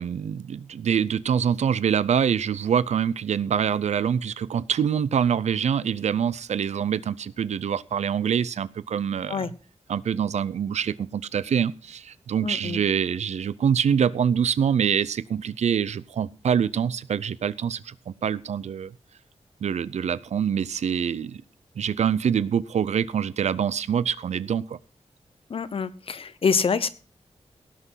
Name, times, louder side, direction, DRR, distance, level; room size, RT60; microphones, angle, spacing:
voice 1, 0.0-9.5 9.9-18.9 19.6-21.4 21.8-24.8, right 8 dB, 90° right, 0.5 m, -25 dB
voice 2, 12.4-12.8 25.5-26.9, left 5 dB, 55° left, 1.0 m, -26 dB
17.5 x 6.1 x 5.6 m
wide cardioid pair, 165°, 11 cm